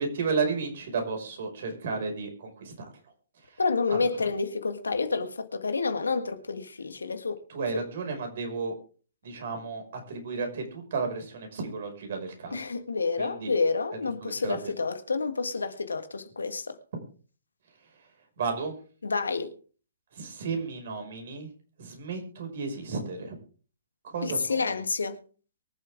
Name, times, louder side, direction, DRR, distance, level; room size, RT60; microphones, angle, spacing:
voice 1, 0.0-2.7 3.5-3.6 3.9-4.1 7.5-8.7 9.2-12.6 13.2-13.5 14.2-14.7 16.9-17.0 18.4-18.8 20.1-21.5 21.8-23.3 24.0-24.8, right 4 dB, 60° right, 5.6 m, -33 dB
voice 2, 3.6-7.4 7.7-7.8 12.5-16.8 19.0-19.5 24.2-25.2, left 4 dB, 85° left, 1.7 m, -29 dB
23.5 x 8.0 x 3.6 m
hypercardioid pair, 130°, 0 cm